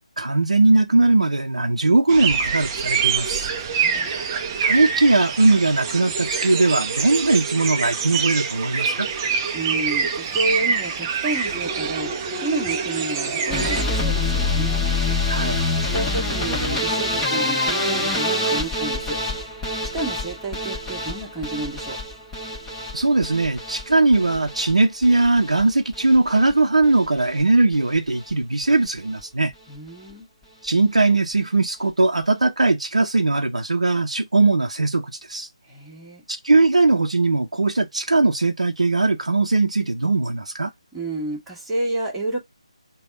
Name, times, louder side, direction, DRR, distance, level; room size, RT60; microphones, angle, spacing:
voice 1, 0.2-3.5 4.6-9.1 15.3-15.6 22.9-29.5 30.6-35.5 36.3-40.7, right 2 dB, 75° right, 0.6 m, -19 dB
sound 1, 2.1-13.8, right 6 dB, 25° right, 0.5 m, -25 dB
voice 2, 3.7-4.1 9.5-12.1 12.4-14.9 15.9-19.6 19.9-22.0 29.7-30.3 35.6-36.2 40.9-42.4, right 2 dB, 5° right, 1.4 m, -30 dB
sound 2, 13.5-25.6 25.9-26.5 26.8-27.4 27.7-28.0 28.3-28.4 28.6-28.7, left 2 dB, 10° left, 1.1 m, -26 dB
3.4 x 2.3 x 3.7 m
figure-of-eight pair, 150°, 4 cm